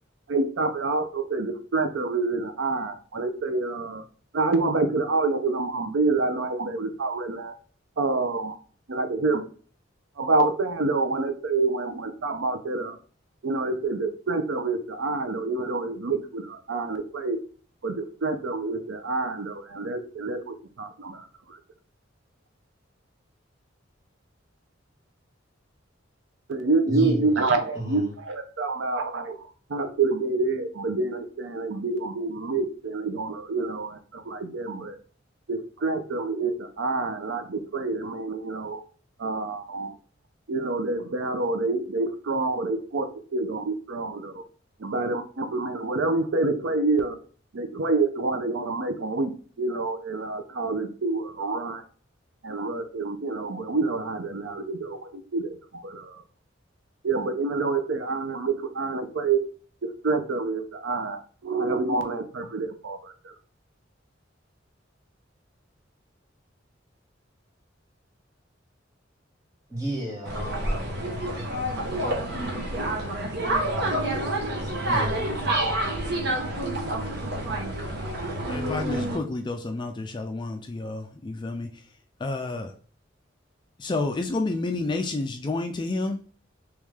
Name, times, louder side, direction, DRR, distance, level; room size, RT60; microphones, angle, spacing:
voice 1, 0.3-4.0 4.3-7.5 8.0-8.5 8.9-9.4 10.2-13.0 13.4-17.4 17.8-21.6 26.5-34.9 35.5-38.8 39.2-39.9 40.5-44.4 44.8-47.2 47.5-49.3 49.6-51.8 52.4-56.2 57.0-59.4 60.0-63.3, right 3 dB, 75° right, 7 dB, 0.5 m, -27 dB
voice 2, 26.9-27.3 27.7-28.1 69.7-71.0 74.9-75.7, right 1 dB, 15° right, -4 dB, 1.6 m, -32 dB
sound 1, 70.3-79.2, right 1 dB, 55° right, 1.0 m, -28 dB
voice 3, 78.5-81.7 82.2-82.7 83.8-86.2, left 2 dB, 25° left, 5 dB, 0.3 m, -30 dB
3.5 x 3.1 x 3.2 m, 0.40 s
head